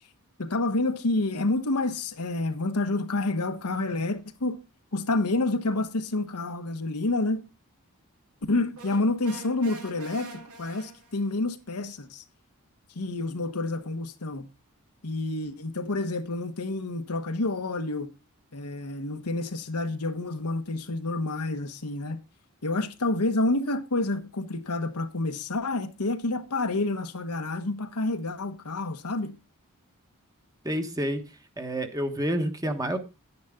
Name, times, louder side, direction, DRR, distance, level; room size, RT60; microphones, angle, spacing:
voice 1, 0.4-4.6 4.9-7.4 8.5-12.2 12.9-14.5 15.0-18.1 18.5-22.2 22.6-29.3, left 2 dB, 85° left, 1.2 m, -28 dB
sound 1, 8.8-11.4, right 2 dB, 85° right, 2.3 m, -45 dB
voice 2, 30.6-31.2 31.6-33.0, right 1 dB, 15° right, 1.2 m, -28 dB
11.0 x 9.4 x 3.7 m
head